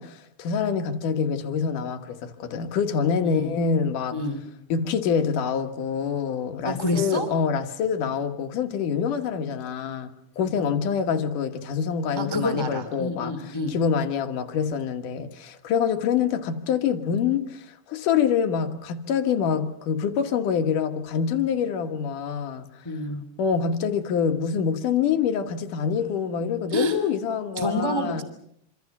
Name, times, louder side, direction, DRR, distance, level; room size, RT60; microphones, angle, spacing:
voice 1, 0.0-4.2 4.7-22.7 23.4-28.2, left 7 dB, 60° left, 2.7 m, -26 dB
voice 2, 3.2-3.6 4.1-4.4 6.6-7.3 12.2-13.8 22.8-23.2 26.7-27.0 27.6-28.2, left 1 dB, 10° left, 1.8 m, -28 dB
26.5 x 26.5 x 6.0 m
omnidirectional pair, 4.5 m